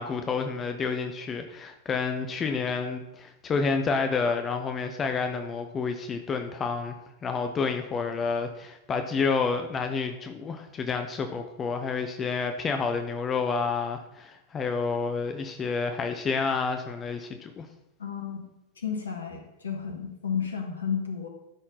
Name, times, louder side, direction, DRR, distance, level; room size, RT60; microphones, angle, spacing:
voice 1, 0.0-7.0 7.2-17.7, left 5 dB, 25° left, 6 dB, 0.7 m, -29 dB
voice 2, 18.0-18.5 18.8-21.3, left 7 dB, 70° left, 3 dB, 1.7 m, -32 dB
13.0 x 4.4 x 5.5 m, 0.93 s
figure-of-eight pair, 90°, 0 cm